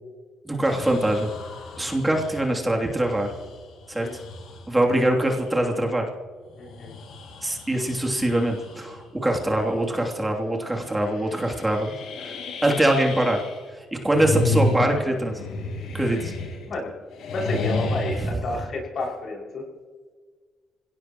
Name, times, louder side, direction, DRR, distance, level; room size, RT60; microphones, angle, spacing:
voice 1, 0.4-1.3 1.8-3.3 3.9-4.1 4.7-6.0 7.4-11.9 12.2-12.4 12.6-13.4 13.7-15.4 15.9-16.3 18.2-18.3, right 1 dB, 15° right, 0 dB, 2.9 m, -23 dB
sound 1, 0.6-4.8 5.3-5.5 6.5-9.0 9.5-9.9 10.2-10.3 10.8-13.6 14.0-16.8 17.1-18.3, left 2 dB, 80° left, 3.9 m, -32 dB
voice 2, 6.6-6.9 16.7-16.9 17.3-19.7, left 2 dB, 60° left, -2 dB, 6.1 m, -31 dB
26.0 x 17.5 x 3.1 m, 1.5 s
cardioid pair, 90°, 0 cm